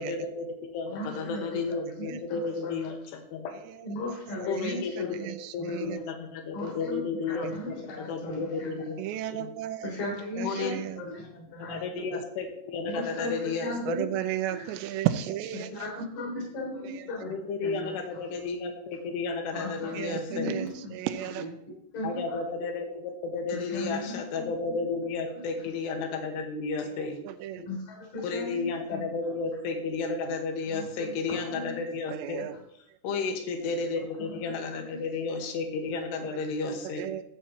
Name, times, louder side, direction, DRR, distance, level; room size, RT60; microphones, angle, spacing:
voice 1, 0.0-3.6 4.5-9.1 9.4-9.5 10.4-10.7 11.1-14.0 17.2-20.6 22.0-27.2 28.2-32.4 33.0-37.1, left 4 dB, 70° left, 4 dB, 3.3 m, -33 dB
voice 2, 0.9-1.4 2.1-2.8 3.8-5.2 5.7-5.8 6.5-8.8 9.8-11.1 11.4-11.8 12.9-13.3 13.6-14.0 14.5-14.6 15.7-17.3 17.6-17.9 19.5-19.9 20.3-20.9 21.3-22.4 23.5-24.7 27.7-29.0 30.7-31.1 31.5-31.8 33.9-34.0, left 2 dB, 50° left, -2 dB, 4.8 m, -37 dB
voice 3, 4.3-6.0 7.4-7.5 9.0-9.9 10.4-11.0 12.1-12.2 13.9-16.0 16.8-17.1 19.9-21.5 27.3-27.6 32.1-32.5 37.0-37.2, right 12 dB, 80° right, 10 dB, 2.7 m, -34 dB
14.0 x 8.3 x 2.9 m, 0.77 s
omnidirectional pair, 5.3 m